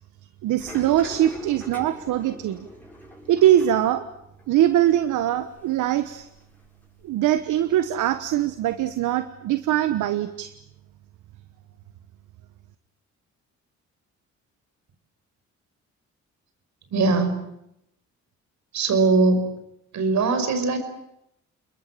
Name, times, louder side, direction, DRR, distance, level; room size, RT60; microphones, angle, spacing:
voice 1, 0.4-2.7 3.3-4.0 4.5-6.3 7.0-10.5, right 12 dB, 85° right, 11 dB, 1.3 m, -22 dB
sound 1, 0.6-7.3 7.6-9.0, left 1 dB, 5° left, 7.5 m, -44 dB
voice 2, 16.9-17.5 18.7-19.6 19.9-20.8, right 3 dB, 65° right, 9 dB, 5.6 m, -21 dB
29.0 x 21.5 x 7.5 m, 0.81 s
cardioid pair, 90°, 30 cm